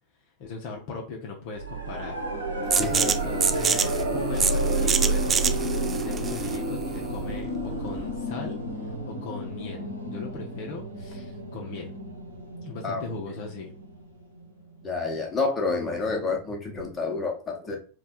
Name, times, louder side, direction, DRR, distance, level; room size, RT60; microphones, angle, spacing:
voice 1, 0.4-2.2 2.9-5.6 6.0-7.5 7.8-11.9 12.6-13.7, left 4 dB, 45° left, 0 dB, 0.7 m, -38 dB
System shutdown, 1.6-14.4 16.8-16.9, right 1 dB, 85° right, 0.9 m, -30 dB
sound 1, 2.7-8.2, right 6 dB, 20° right, 0.3 m, -27 dB
voice 2, 2.8-3.1 12.8-13.0 14.8-17.8, left 4 dB, 15° left, 0 dB, 1.0 m, -29 dB
3.3 x 2.3 x 4.2 m, 0.37 s
figure-of-eight pair, 90°, 0 cm